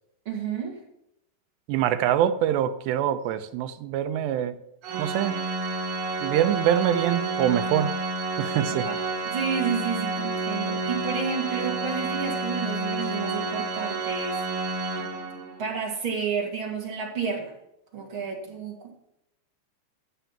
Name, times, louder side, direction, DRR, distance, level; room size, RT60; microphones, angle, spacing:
voice 1, 0.3-0.8 8.7-9.0 9.2-14.4 15.6-17.5 17.9-19.0, right 6 dB, 35° right, 0 dB, 2.5 m, -31 dB
voice 2, 1.7-4.6 5.0-5.4 6.2-7.9 8.4-8.9, right 10 dB, 85° right, 10 dB, 2.9 m, -24 dB
Organ, 4.8-15.6, right 3 dB, 65° right, 1.4 m, -30 dB
14.0 x 7.3 x 5.9 m, 0.79 s
omnidirectional pair, 5.0 m